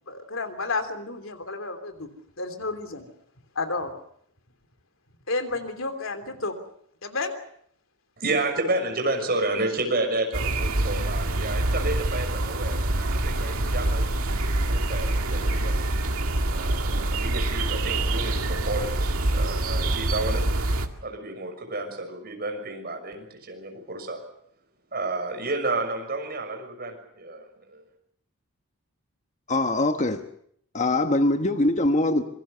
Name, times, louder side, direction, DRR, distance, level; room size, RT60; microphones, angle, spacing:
voice 1, 0.1-2.1 2.4-3.1 3.5-3.9 5.3-6.6 7.0-7.3, left 3 dB, 65° left, 3.3 m, -31 dB
voice 2, 8.2-15.8 16.5-18.9 19.3-20.4 21.0-24.2 24.9-27.8, right 2 dB, 45° right, 6.3 m, -31 dB
sound 1, 10.3-20.9, right 1 dB, 85° right, 2.1 m, -25 dB
voice 3, 29.5-30.2 30.7-32.2, left 2 dB, 35° left, 1.2 m, -22 dB
26.0 x 23.5 x 6.8 m
head